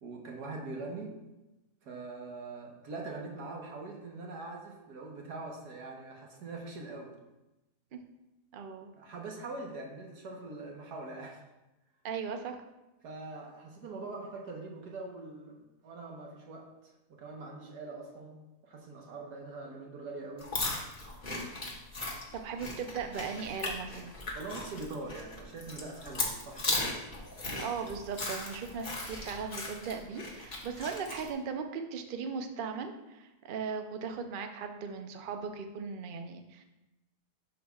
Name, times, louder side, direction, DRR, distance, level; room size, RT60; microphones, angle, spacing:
voice 1, 0.0-1.2 1.8-7.1 9.0-11.4 13.0-20.5 24.3-26.9, right 3 dB, 85° right, 0 dB, 1.7 m, -43 dB
voice 2, 8.5-8.9 12.0-12.6 22.3-24.2 27.6-36.6, right 5 dB, 60° right, 6 dB, 0.5 m, -38 dB
sound 1, 20.4-31.3, left 2 dB, 35° left, 1.4 m, -37 dB
11.0 x 6.0 x 2.4 m, 1.0 s
omnidirectional pair, 1.7 m